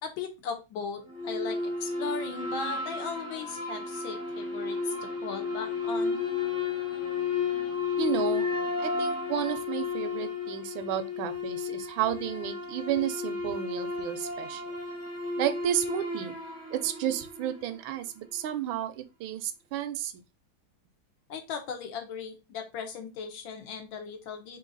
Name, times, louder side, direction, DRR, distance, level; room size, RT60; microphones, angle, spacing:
voice 1, 0.0-6.2 21.3-24.6, left 6 dB, 80° left, 1.6 m, -38 dB
sound 1, 1.1-17.7, left 4 dB, 10° left, 0.7 m, -33 dB
voice 2, 8.0-8.5 8.8-14.6 15.4-16.3 16.7-20.2, right 10 dB, 80° right, 1.3 m, -32 dB
3.9 x 2.7 x 3.8 m
omnidirectional pair, 2.1 m